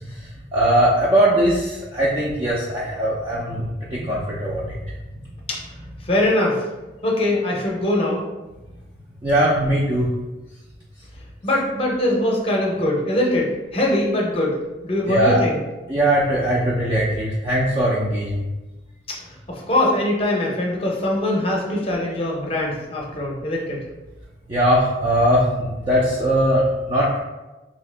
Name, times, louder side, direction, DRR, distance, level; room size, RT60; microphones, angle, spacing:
voice 1, 0.0-4.8 9.2-10.1 15.1-15.4 15.9-18.4 24.5-27.2, right 1 dB, 25° right, -6 dB, 0.4 m, -20 dB
voice 2, 6.0-6.6 7.0-8.2 11.4-14.6 14.8-15.6 19.1-19.2 19.5-23.8, left 1 dB, 30° left, -2 dB, 0.6 m, -22 dB
2.8 x 2.7 x 3.3 m, 1.1 s
head